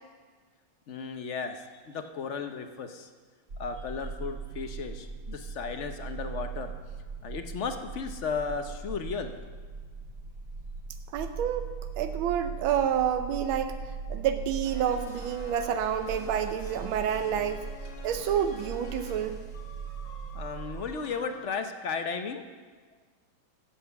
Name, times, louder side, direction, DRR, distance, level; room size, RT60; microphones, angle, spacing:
voice 1, 0.9-3.1 3.6-6.7 7.2-9.3 20.3-22.4, left 5 dB, 55° left, 7 dB, 0.8 m, -35 dB
sound 1, 3.5-20.9, right 5 dB, 50° right, 1.7 m, -40 dB
voice 2, 11.1-11.6 12.0-13.8 14.1-17.7 18.0-19.4, right 9 dB, 90° right, 7 dB, 1.5 m, -28 dB
sound 2, 14.6-21.5, left 4 dB, 75° left, 2.3 m, -48 dB
14.5 x 7.5 x 6.9 m, 1.5 s
omnidirectional pair, 2.2 m